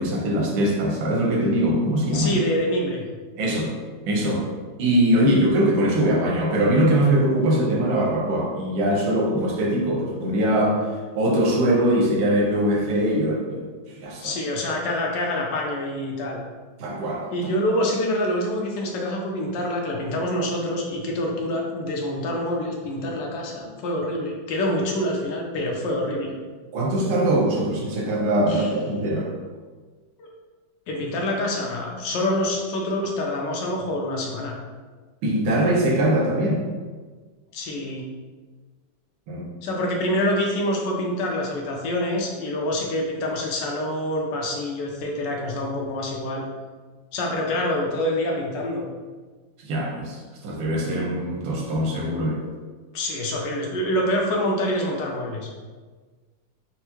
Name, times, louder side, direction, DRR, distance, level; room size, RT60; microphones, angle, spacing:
voice 1, 0.0-2.4 3.4-3.7 4.1-4.5 4.8-10.8 11.2-13.7 14.0-14.3 16.8-17.3 26.7-29.3 35.2-36.6 39.3-39.5 49.6-50.2 50.4-52.4, right 1 dB, 85° right, -1 dB, 1.5 m, -22 dB
voice 2, 2.1-3.0 14.2-16.4 17.3-26.3 28.5-28.7 30.2-30.3 30.9-34.5 37.5-38.0 39.6-46.4 47.1-48.9 52.9-55.5, left 1 dB, 75° left, 0 dB, 1.2 m, -26 dB
4.4 x 2.0 x 2.9 m, 1.4 s
omnidirectional pair, 2.1 m